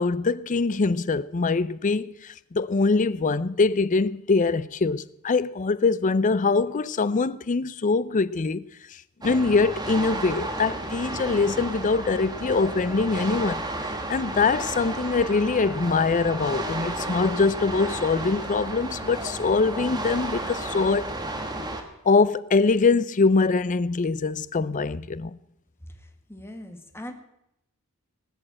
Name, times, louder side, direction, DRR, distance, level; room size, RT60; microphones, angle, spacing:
voice 1, 0.0-8.6 9.2-13.6 14.1-21.1 22.0-25.3, left 4 dB, 35° left, 0.5 m, -23 dB
sound 1, 9.2-21.8, right 2 dB, 20° right, 1.6 m, -32 dB
voice 2, 25.9-27.1, left 1 dB, 10° left, 1.5 m, -41 dB
19.0 x 6.6 x 8.7 m
head